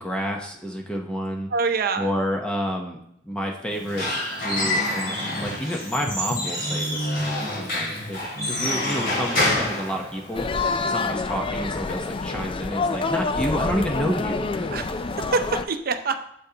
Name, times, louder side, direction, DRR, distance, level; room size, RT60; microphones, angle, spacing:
voice 1, 0.0-1.5 2.0-3.0 3.2-4.1 4.4-5.2 5.4-14.7, equal, 5° left, 1 dB, 0.8 m, -29 dB
voice 2, 1.5-2.1 14.7-16.2, right 4 dB, 55° right, 8 dB, 0.7 m, -25 dB
Squeak / Wood, 3.7-10.6, left 1 dB, 55° left, 2.6 m, -27 dB
sound 1, 10.3-15.6, left 3 dB, 30° left, 0.4 m, -27 dB
8.5 x 7.0 x 2.9 m, 0.73 s
head